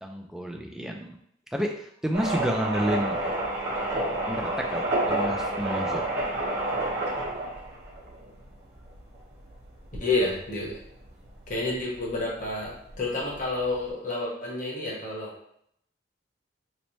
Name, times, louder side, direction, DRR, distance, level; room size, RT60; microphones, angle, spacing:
voice 1, 0.0-1.2 1.5-3.2 4.2-6.0, equal, ahead, 1 dB, 0.3 m, -30 dB
sound 1, 2.1-13.9, right 1 dB, 55° right, 0.9 m, -30 dB
voice 2, 10.0-10.8 11.5-15.3, left 2 dB, 40° left, -3 dB, 1.0 m, -29 dB
3.1 x 2.1 x 4.0 m, 0.71 s
head